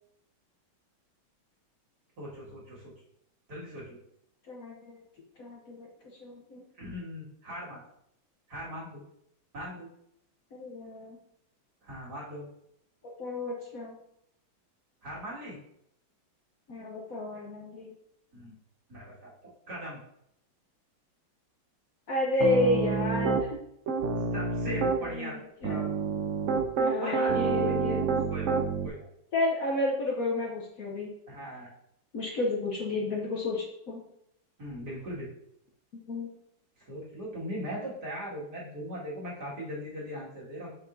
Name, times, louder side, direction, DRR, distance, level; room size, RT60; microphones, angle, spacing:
voice 1, 2.2-2.9 3.5-4.0 6.8-7.8 8.5-9.0 9.5-9.9 11.8-12.5 15.0-15.6 18.3-18.5 18.9-20.0 24.3-25.9 27.0-27.3 27.6-27.9 28.3-28.6 28.8-29.1 31.3-31.7 34.6-35.3 36.8-40.7, equal, 55° right, -6 dB, 2.6 m, -39 dB
voice 2, 4.5-5.0 5.4-5.9 6.2-6.6 10.5-11.2 13.2-13.9 16.7-17.9 22.1-23.6 25.0-25.8 26.8-28.0 29.3-31.1 32.1-34.0 36.1-36.3, left 2 dB, 55° left, -1 dB, 1.1 m, -31 dB
Piano, 22.4-23.5 23.9-25.0 25.6-28.9, right 5 dB, 80° right, 0.6 m, -28 dB
7.4 x 5.8 x 2.6 m, 0.76 s
omnidirectional pair, 2.1 m